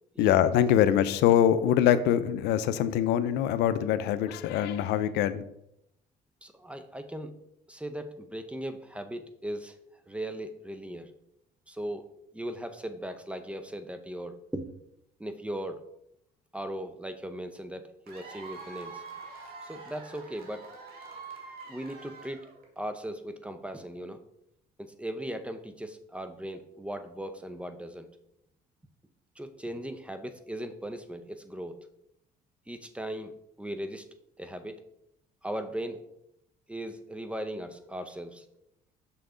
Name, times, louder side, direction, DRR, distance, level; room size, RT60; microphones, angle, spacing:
voice 1, 0.2-5.4, left 10 dB, 85° left, 13 dB, 0.5 m, -24 dB
voice 2, 6.4-7.4 7.7-9.8 10.1-11.1 11.7-12.0 12.3-14.6 15.2-15.8 16.5-19.0 19.6-20.6 21.7-22.5 22.8-24.2 24.8-28.1 29.4-31.8 32.7-34.0 34.4-34.8 35.4-36.0 36.7-38.4, right 1 dB, 5° right, 9 dB, 0.6 m, -38 dB
Cheering / Applause / Crowd, 18.1-22.8, right 4 dB, 65° right, 1.8 m, -45 dB
6.2 x 5.8 x 3.8 m, 0.78 s
cardioid pair, 110°, 17 cm